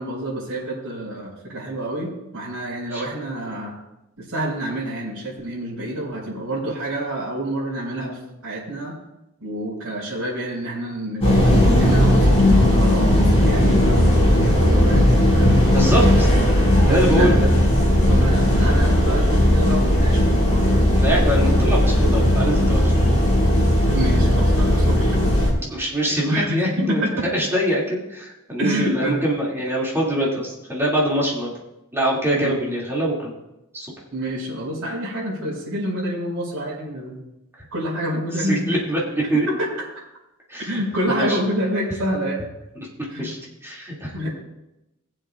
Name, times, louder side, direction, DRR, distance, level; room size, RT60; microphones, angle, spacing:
voice 1, 0.0-3.7 4.2-8.9 9.4-15.6 16.3-17.6 18.1-20.7 23.9-25.2 26.3-27.3 28.6-29.2 32.3-32.5 34.1-37.2 37.7-38.7 39.2-40.0 40.7-42.4 43.1-43.3 44.1-44.3, right 1 dB, 85° right, -9 dB, 4.3 m, -28 dB
sound 1, 11.2-25.5, left 1 dB, 30° left, 3.5 m, -17 dB
voice 2, 15.6-16.3 16.8-17.4 21.0-23.1 25.7-31.5 31.9-33.3 33.7-33.9 38.4-39.5 40.5-40.8 41.1-41.4 43.2-44.3, right 1 dB, 10° right, -5 dB, 2.5 m, -24 dB
20.5 x 7.6 x 2.5 m, 0.92 s
head